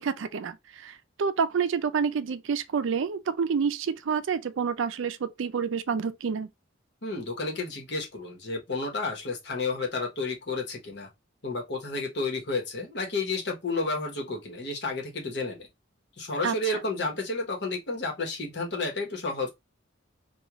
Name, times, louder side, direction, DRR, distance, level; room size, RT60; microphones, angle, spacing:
voice 1, 0.0-6.5 16.4-16.5, right 6 dB, 70° right, 0.4 m, -28 dB
voice 2, 7.0-11.1 11.4-15.7 16.2-19.5, left 3 dB, 55° left, 1.1 m, -31 dB
3.0 x 2.3 x 3.4 m
head